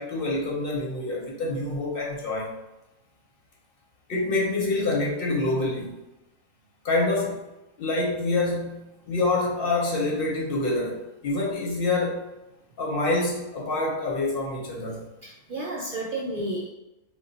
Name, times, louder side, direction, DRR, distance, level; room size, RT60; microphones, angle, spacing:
voice 1, 0.0-2.5 4.1-5.9 6.8-7.4 7.8-12.3 12.8-15.0, left 2 dB, 55° left, -2 dB, 0.8 m, -26 dB
voice 2, 15.2-16.7, right 1 dB, 60° right, -4 dB, 0.5 m, -31 dB
2.3 x 2.2 x 3.9 m, 0.96 s
omnidirectional pair, 1.3 m